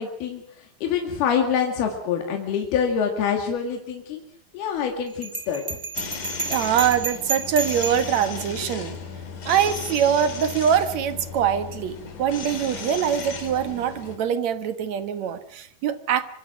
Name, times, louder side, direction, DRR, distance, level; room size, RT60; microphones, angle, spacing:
voice 1, 0.0-4.2 4.5-5.8, left 7 dB, 80° left, 3 dB, 4.1 m, -26 dB
Bell, 5.2-8.2, right 4 dB, 30° right, 2.5 m, -31 dB
sound 1, 5.9-14.2, left 5 dB, 55° left, 4.2 m, -35 dB
voice 2, 6.5-9.0 9.5-16.2, right 9 dB, 55° right, 11 dB, 2.4 m, -23 dB
25.0 x 24.5 x 6.1 m, 0.63 s
omnidirectional pair, 4.4 m